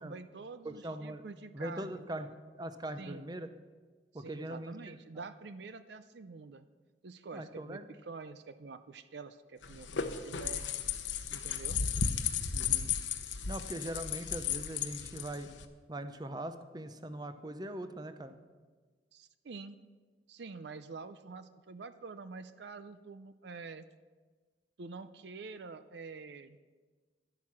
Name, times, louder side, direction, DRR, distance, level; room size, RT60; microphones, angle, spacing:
voice 1, 0.0-2.3 3.0-3.3 4.1-6.7 7.0-10.7 11.3-11.8 15.0-15.1 19.1-19.8 20.3-23.8 24.8-26.6, right 4 dB, 65° right, 12 dB, 0.5 m, -47 dB
voice 2, 0.6-1.2 1.5-3.5 4.1-4.8 7.3-7.8 12.5-12.9 13.5-15.5 15.9-18.3, right 1 dB, 20° right, 10 dB, 0.6 m, -41 dB
sound 1, 9.6-15.7, left 7 dB, 80° left, 0.9 m, -34 dB
11.5 x 11.0 x 5.9 m, 1.4 s
head